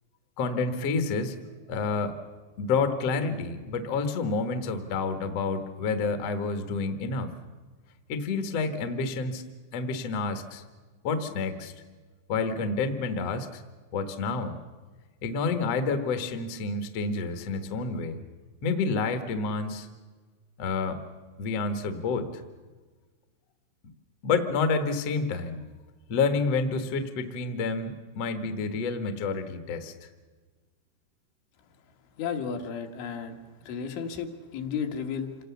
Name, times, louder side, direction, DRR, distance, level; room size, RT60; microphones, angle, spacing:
voice 1, 0.4-1.3 1.7-2.2 2.6-7.3 8.1-9.4 9.7-10.6 11.0-11.7 12.3-13.6 13.9-14.5 15.2-18.2 18.6-19.9 20.6-21.0 21.4-22.4 24.2-25.6 26.1-29.9, left 4 dB, 65° left, 8 dB, 1.5 m, -29 dB
voice 2, 32.2-33.4 33.7-35.3, left 6 dB, 80° left, 4 dB, 4.0 m, -33 dB
27.0 x 18.5 x 7.1 m, 1.4 s
omnidirectional pair, 5.3 m